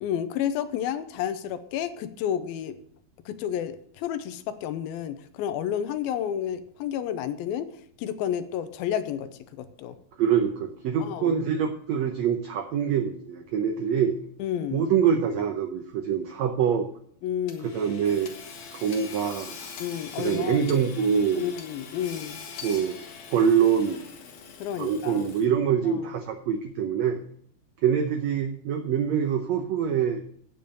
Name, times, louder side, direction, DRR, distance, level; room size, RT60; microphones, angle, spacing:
voice 1, 0.0-2.8 3.3-7.7 8.0-10.0 11.0-11.4 14.4-14.9 17.2-17.7 19.8-20.7 21.4-22.4 24.6-25.3 25.9-26.1, left 9 dB, 85° left, 12 dB, 2.6 m, -31 dB
voice 2, 10.2-14.2 14.7-16.9 17.6-18.3 18.7-19.6 20.2-21.5 22.6-23.0 23.3-24.1 24.8-27.2 27.8-30.2, right 7 dB, 85° right, 6 dB, 1.5 m, -25 dB
Hammer / Sawing, 17.5-25.7, left 6 dB, 55° left, 2.0 m, -43 dB
9.2 x 7.0 x 6.8 m, 0.64 s
omnidirectional pair, 4.3 m